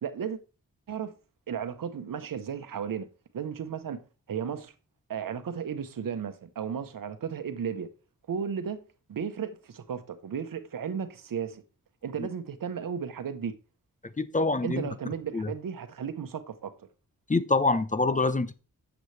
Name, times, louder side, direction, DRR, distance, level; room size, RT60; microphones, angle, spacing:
voice 1, 0.0-0.4 0.9-1.1 1.5-3.1 3.3-4.0 4.3-4.7 5.1-7.9 8.3-8.8 9.1-11.6 12.0-13.5 14.6-16.7, right 7 dB, 75° right, 1.0 m, -34 dB
voice 2, 14.2-14.8 15.3-15.5 17.3-18.5, left 3 dB, 25° left, 0.8 m, -25 dB
9.3 x 7.3 x 3.3 m
cardioid pair, 60°, 33 cm